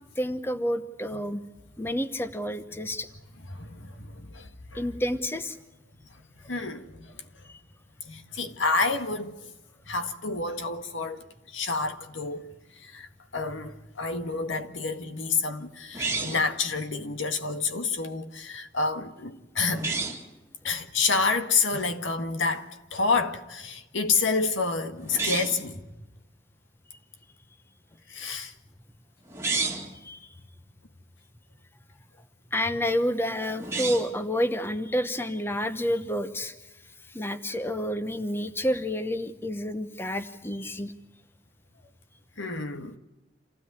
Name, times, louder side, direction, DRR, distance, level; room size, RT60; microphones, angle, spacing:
voice 1, 0.2-1.4 1.8-3.1 4.7-5.6 7.5-7.6 30.0-30.3 32.5-36.5 37.1-40.9, equal, 10° left, 1.0 m, -29 dB
voice 2, 3.5-4.9 6.4-7.1 8.0-9.5 9.9-12.5 12.8-19.9 20.6-25.9 28.1-28.5 42.4-43.0, left 4 dB, 85° left, 1.8 m, -29 dB
sound 1, 15.9-16.6 19.7-20.3 25.0-25.7 29.3-29.9 33.5-34.2, right 4 dB, 15° right, 2.3 m, -30 dB
27.5 x 16.0 x 9.7 m
head